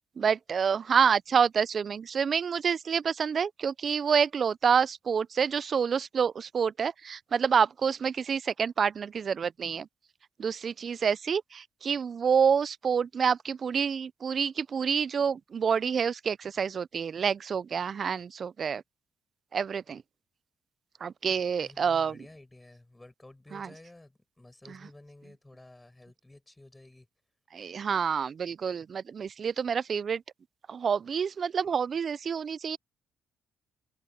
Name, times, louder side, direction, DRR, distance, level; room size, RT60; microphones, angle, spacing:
voice 1, 0.2-9.9 10.4-18.8 19.5-20.0 21.0-22.2 23.5-23.7 27.5-30.2 30.7-32.8, right 6 dB, 50° right, 0.3 m, -28 dB
voice 2, 21.6-27.1, left 2 dB, 15° left, 6.3 m, -52 dB
cardioid pair, 90°, 0 cm